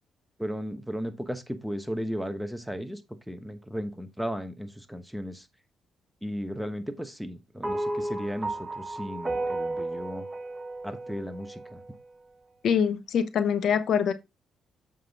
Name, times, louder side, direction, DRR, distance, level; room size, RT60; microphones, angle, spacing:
voice 1, 0.4-3.0 3.3-5.5 6.2-10.3 10.8-11.8, equal, ahead, 1.1 m, -35 dB
sound 1, 7.6-12.1, right 2 dB, 20° right, 1.3 m, -33 dB
voice 2, 12.6-14.1, left 7 dB, 65° left, 0.9 m, -24 dB
7.6 x 5.6 x 3.5 m
cardioid pair, 90°, 0 cm